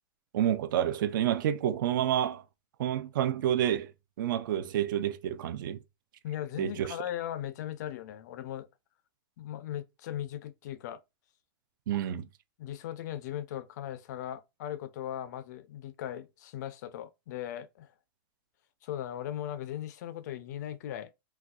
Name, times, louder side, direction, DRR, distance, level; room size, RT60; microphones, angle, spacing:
voice 1, 0.3-2.4 2.8-3.9 4.2-5.8 6.6-7.0 11.9-12.3, right 10 dB, 60° right, 0.4 m, -29 dB
voice 2, 6.2-8.7 9.4-11.0 12.6-17.9 18.8-21.1, left 11 dB, 50° left, 0.3 m, -38 dB
4.0 x 2.3 x 2.3 m
supercardioid pair, 170°, 12 cm